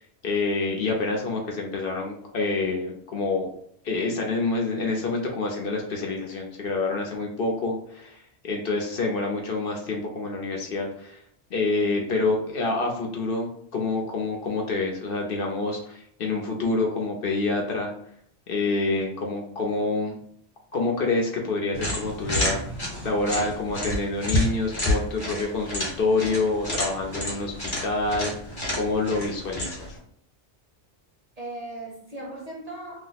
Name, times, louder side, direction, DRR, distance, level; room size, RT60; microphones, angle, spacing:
voice 1, 0.2-3.5 3.8-11.2 11.5-17.9 18.5-20.2 20.7-22.6 23.0-28.3 28.7-30.0, left 3 dB, 60° left, 0 dB, 0.7 m, -27 dB
sound 1, 21.7-30.0, left 1 dB, 25° left, 0.7 m, -30 dB
voice 2, 31.4-33.1, right 2 dB, 40° right, -2 dB, 0.7 m, -38 dB
2.8 x 2.0 x 3.9 m, 0.66 s
omnidirectional pair, 1.2 m